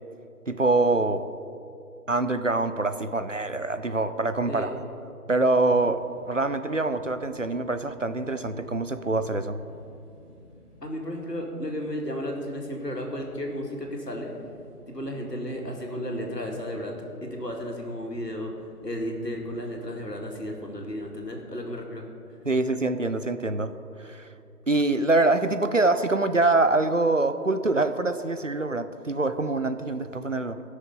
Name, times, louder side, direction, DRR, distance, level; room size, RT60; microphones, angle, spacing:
voice 1, 0.5-1.2 2.1-4.7 5.3-9.6 22.5-23.7 24.0-24.3 24.7-30.6, right 2 dB, 55° right, 10 dB, 0.6 m, -25 dB
sound 1, 5.6-21.3, left 1 dB, 10° left, 3.2 m, -54 dB
voice 2, 10.8-14.3 14.9-16.9 17.2-18.5 18.8-22.0, equal, 90° left, 0 dB, 2.4 m, -33 dB
16.0 x 6.4 x 5.5 m, 2.6 s
figure-of-eight pair, 165°, 47 cm